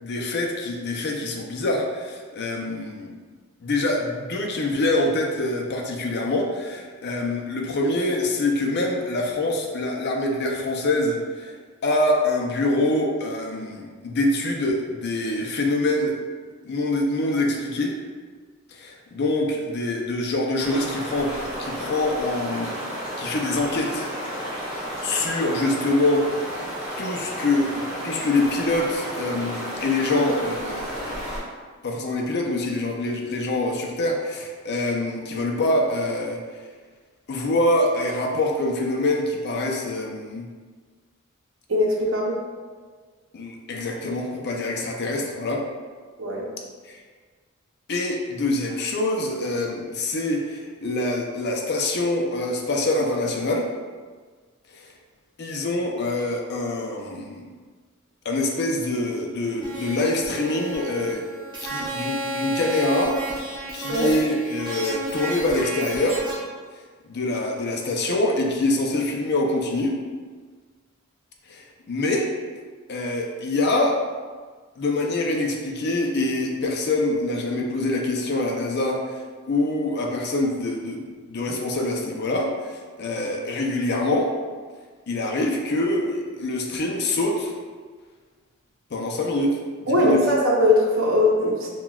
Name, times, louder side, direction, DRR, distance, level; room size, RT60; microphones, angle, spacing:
voice 1, 0.0-3.2 3.6-11.5 11.8-16.2 16.6-18.0 18.7-22.8 23.2-24.1 25.0-26.3 27.0-31.3 31.8-36.4 37.3-40.5 43.3-45.6 46.9-47.0 47.9-53.7 54.7-54.9 55.4-57.5 58.2-61.2 61.6-63.2 63.7-66.2 66.7-70.0 71.5-72.3 72.9-74.0 74.8-79.2 79.5-84.3 85.1-87.5 88.9-89.6 89.9-90.2, left 2 dB, 55° left, 1 dB, 0.5 m, -25 dB
sound 1, 20.6-31.4, equal, 5° right, 1.3 m, -32 dB
voice 2, 41.7-42.4 46.2-46.5 63.9-64.1 89.9-91.7, left 1 dB, 65° right, -2 dB, 0.7 m, -20 dB
sound 2, 59.6-66.3, right 1 dB, 20° right, 0.9 m, -32 dB
5.8 x 2.3 x 2.3 m, 1.5 s
head